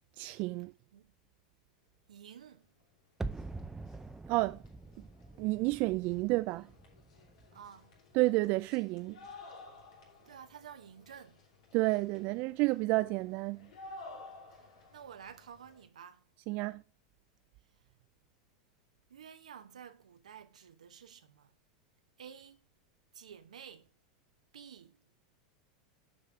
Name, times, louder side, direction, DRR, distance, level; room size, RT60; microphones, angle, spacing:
voice 1, 0.2-0.7 4.3-4.6 5.4-6.7 8.1-9.2 11.7-13.7 16.5-16.8, right 21 dB, 50° right, 0.4 m, -30 dB
voice 2, 2.1-2.7 7.5-8.0 10.3-11.4 14.5-16.2 19.1-21.5 22.2-22.6 23.1-23.9 24.5-25.2, right 8 dB, 90° right, 0.9 m, -52 dB
sound 1, 2.8-2.9 3.1-15.8, left 2 dB, 75° left, 3.0 m, -54 dB
sound 2, 3.2-8.1 8.4-8.5, right 3 dB, 10° right, 0.6 m, -45 dB
6.6 x 5.2 x 5.8 m
hypercardioid pair, 105°, 4 cm